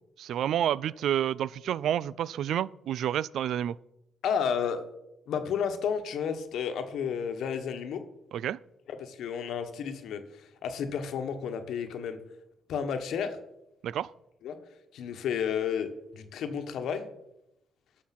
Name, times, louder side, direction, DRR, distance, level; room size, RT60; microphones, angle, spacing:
voice 1, 0.2-3.8 8.3-8.6 13.8-14.1, right 10 dB, 70° right, 22 dB, 0.3 m, -29 dB
voice 2, 4.2-4.8 5.3-8.0 8.9-12.2 12.7-13.4 14.4-14.6 14.9-17.1, left 7 dB, 75° left, 8 dB, 1.2 m, -32 dB
12.0 x 6.4 x 5.8 m, 0.86 s
cardioid pair, 90°, 0 cm